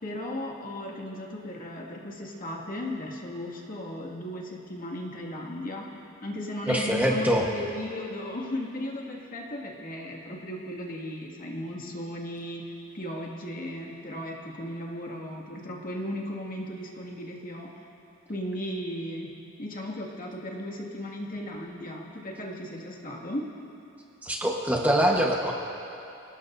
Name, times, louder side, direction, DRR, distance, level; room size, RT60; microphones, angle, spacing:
voice 1, 0.0-12.6 12.9-17.7 18.3-19.3 19.6-23.4, left 1 dB, 45° left, -2 dB, 2.2 m, -36 dB
voice 2, 6.7-7.4 24.2-25.5, equal, 10° right, -2 dB, 1.2 m, -24 dB
28.5 x 19.0 x 2.7 m, 2.8 s
head